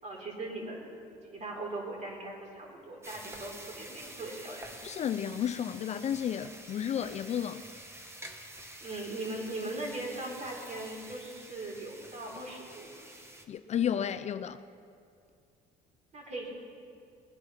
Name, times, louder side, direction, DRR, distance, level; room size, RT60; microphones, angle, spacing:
voice 1, 0.0-0.8 1.3-4.7 8.8-12.9 16.1-16.5, right 2 dB, 45° right, 4.0 m, -39 dB
sound 1, 3.0-13.4, right 1 dB, 15° right, 1.3 m, -48 dB
voice 2, 4.8-7.7 13.5-14.6, left 9 dB, 40° left, 0.4 m, -32 dB
21.0 x 9.7 x 5.8 m
cardioid pair, 110°, 17 cm